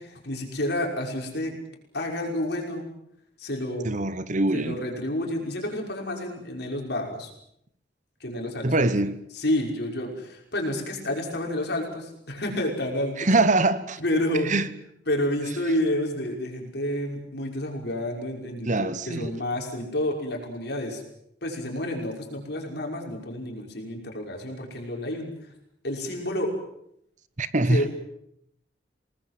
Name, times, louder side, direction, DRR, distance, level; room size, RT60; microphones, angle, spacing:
voice 1, 0.0-1.6 1.9-2.8 3.4-3.9 4.5-7.3 8.2-8.9 9.3-13.3 14.0-14.5 15.1-21.0 21.4-25.4 25.8-26.5 27.7-27.9, left 1 dB, 60° left, 5.9 m, -29 dB
voice 2, 3.8-4.8 8.6-9.2 13.2-14.0 14.4-14.7 18.6-19.3 27.4-27.8, right 2 dB, 45° right, 1.1 m, -23 dB
28.0 x 20.0 x 7.7 m
head